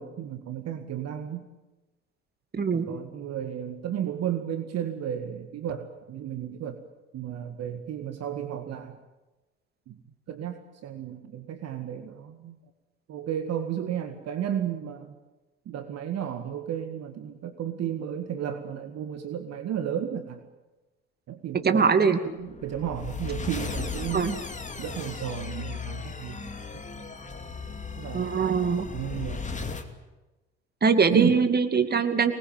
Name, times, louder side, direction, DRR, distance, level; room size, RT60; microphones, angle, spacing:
voice 1, 0.0-1.5 2.7-6.8 7.1-9.0 9.9-10.0 10.3-12.6 13.1-15.2 15.7-20.5 21.3-24.4 24.8-26.8 28.0-28.3 28.9-29.5 31.1-31.5, right 9 dB, 50° right, 8 dB, 2.0 m, -33 dB
voice 2, 2.5-2.9 21.6-22.2 24.1-24.4 28.1-28.9 30.8-32.4, right 5 dB, 30° right, 8 dB, 2.6 m, -22 dB
sound 1, 22.5-29.9, left 4 dB, 20° left, 2.6 m, -36 dB
25.0 x 20.5 x 9.1 m, 1.1 s
figure-of-eight pair, 60°, 34 cm